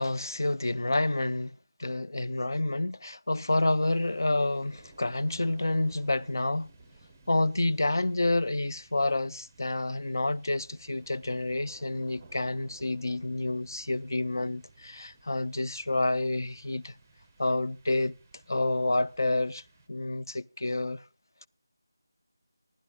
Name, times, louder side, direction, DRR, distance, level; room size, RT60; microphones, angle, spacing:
voice 1, 0.0-1.5 1.8-6.7 7.3-16.9 17.4-18.2 18.5-19.6 19.9-21.0, left 2 dB, 65° left, 0.6 m, -29 dB
sound 1, 3.3-20.3, right 3 dB, 5° right, 0.6 m, -57 dB
28.5 x 11.5 x 2.3 m
figure-of-eight pair, 180°, 2 cm